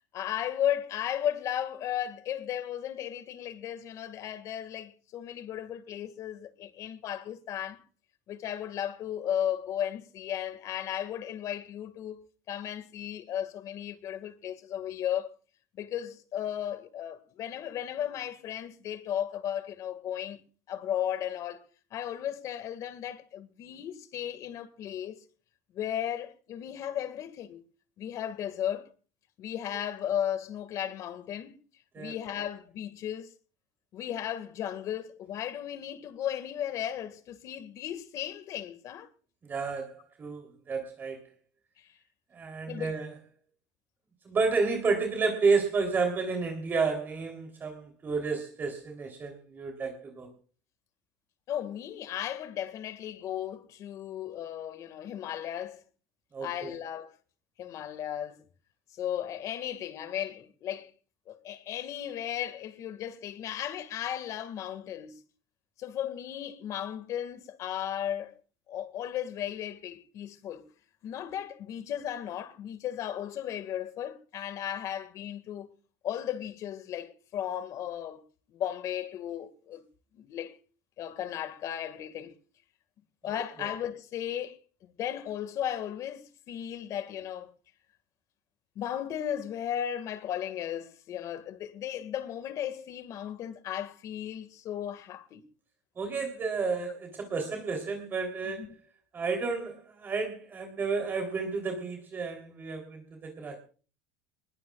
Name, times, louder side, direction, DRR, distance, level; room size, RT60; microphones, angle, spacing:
voice 1, 0.1-7.8 8.3-15.4 15.7-20.4 20.7-21.6 21.9-25.2 25.7-27.6 28.0-28.9 29.4-31.6 32.0-33.3 33.9-39.1 41.8-41.9 42.7-43.0 51.5-55.8 56.4-57.1 57.6-58.4 58.9-60.9 61.3-65.1 65.8-68.4 68.7-70.6 71.0-75.7 76.0-78.2 78.5-79.8 80.1-80.6 81.0-82.4 83.2-87.5 88.8-95.4 98.6-98.7, left 10 dB, 50° left, 1.9 m, -35 dB
voice 2, 39.5-41.2 42.3-43.1 44.3-50.3 56.3-56.7 83.6-83.7 96.0-98.7 99.1-103.6, right 4 dB, 30° right, 3.4 m, -31 dB
21.5 x 20.5 x 2.4 m
supercardioid pair, 115°, 7 cm